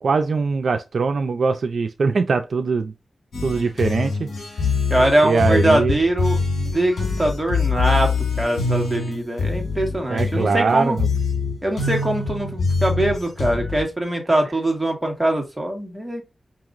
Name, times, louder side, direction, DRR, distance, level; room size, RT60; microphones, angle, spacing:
voice 1, 0.0-2.9 3.4-4.3 5.2-6.0 10.1-11.1, right 4 dB, 75° right, 0.5 m, -21 dB
sound 1, 3.3-13.8, left 4 dB, 75° left, 1.8 m, -24 dB
voice 2, 4.9-8.1 8.4-11.0 11.6-16.2, right 1 dB, 10° right, 1.6 m, -22 dB
5.1 x 3.0 x 2.5 m
wide cardioid pair, 75°, 0 cm